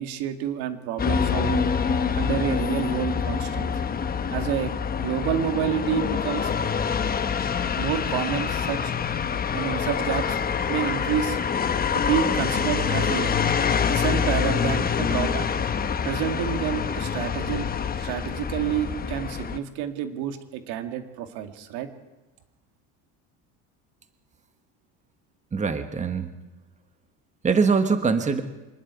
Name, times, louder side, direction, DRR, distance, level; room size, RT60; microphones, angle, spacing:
voice 1, 0.0-1.7 2.2-3.7 4.3-4.7 5.0-6.5 7.8-8.9 9.5-10.4 10.7-11.4 11.9-13.4 13.9-15.5 16.0-17.7 18.0-21.9, right 10 dB, 75° right, 7 dB, 2.1 m, -29 dB
sound 1, 1.0-19.6, left 7 dB, 25° left, 1.0 m, -26 dB
voice 2, 25.5-26.3 27.4-28.4, right 5 dB, 20° right, 8 dB, 1.3 m, -22 dB
24.5 x 11.5 x 9.5 m, 1.1 s
cardioid pair, 130°, 38 cm